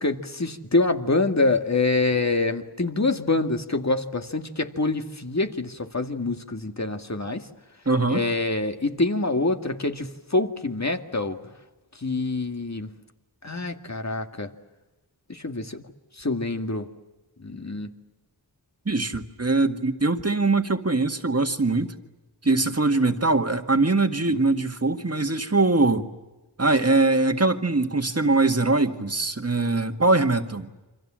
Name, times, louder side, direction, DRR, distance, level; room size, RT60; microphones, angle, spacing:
voice 1, 0.0-7.5 8.1-11.4 12.0-12.9 13.4-14.5 15.3-15.8 16.2-16.9 17.4-17.9 24.3-24.4, left 2 dB, 40° left, 6 dB, 2.1 m, -26 dB
voice 2, 7.9-8.2 18.9-21.9 22.4-26.1 26.6-30.7, right 3 dB, 35° right, 6 dB, 1.9 m, -22 dB
28.5 x 25.5 x 7.6 m, 1.1 s
wide cardioid pair, 60°, 42 cm